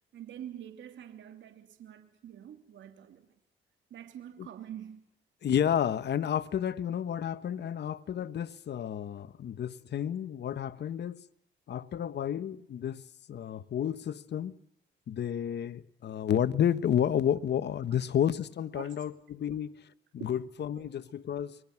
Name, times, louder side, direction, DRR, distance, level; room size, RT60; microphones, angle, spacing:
voice 1, 0.1-3.3 3.9-5.0 18.7-18.9 20.2-20.3 20.8-20.9, right 10 dB, 70° right, 3.0 m, -45 dB
voice 2, 5.4-11.2 11.7-13.0 13.3-14.5 15.1-19.9 20.1-21.6, left 9 dB, 60° left, 1.5 m, -31 dB
29.5 x 22.5 x 6.1 m
cardioid pair, 90°, 20 cm